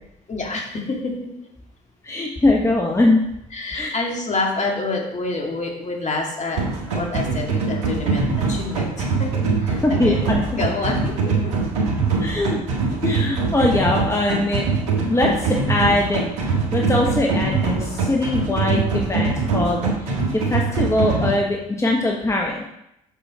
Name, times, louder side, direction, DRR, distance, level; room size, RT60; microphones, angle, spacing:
voice 1, 0.3-1.3 3.5-6.6 6.9-10.2 10.5-11.5, left 3 dB, 35° left, 0 dB, 2.4 m, -27 dB
voice 2, 2.0-3.2 3.7-3.9 9.8-10.6 12.2-12.6 13.0-14.7 15.1-22.6, left 2 dB, 15° left, -1 dB, 1.5 m, -22 dB
sound 1, 6.6-21.3, right 4 dB, 80° right, 1.7 m, -23 dB
7.3 x 6.7 x 4.4 m, 0.80 s
hypercardioid pair, 55°, 19 cm